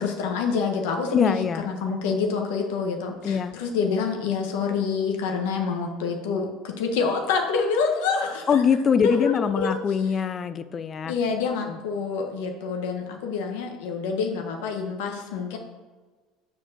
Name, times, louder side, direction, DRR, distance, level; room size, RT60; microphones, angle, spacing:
voice 1, 0.0-8.6 9.0-9.8 11.1-15.6, left 5 dB, 85° left, 2 dB, 1.2 m, -27 dB
voice 2, 1.1-1.6 3.2-3.6 8.5-11.1 11.7-11.8, left 7 dB, 30° left, 13 dB, 0.4 m, -23 dB
7.2 x 4.6 x 6.6 m, 1.4 s
cardioid pair, 140°, 0 cm